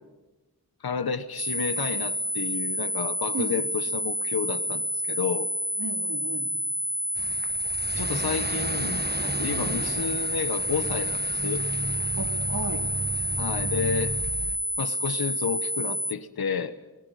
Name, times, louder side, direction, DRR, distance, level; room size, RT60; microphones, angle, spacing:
voice 1, 0.8-5.5 8.0-11.6 13.4-14.2 14.8-16.8, left 6 dB, 75° left, 12 dB, 1.2 m, -31 dB
sound 1, 1.4-16.1, equal, ahead, 1.1 m, -29 dB
voice 2, 3.3-3.6 5.8-6.5 9.6-9.9 12.2-12.8, right 3 dB, 60° right, 5 dB, 3.0 m, -35 dB
sound 2, 7.2-14.6, right 3 dB, 25° right, 1.1 m, -35 dB
24.5 x 18.0 x 9.3 m, 1.1 s
cardioid pair, 40°, 37 cm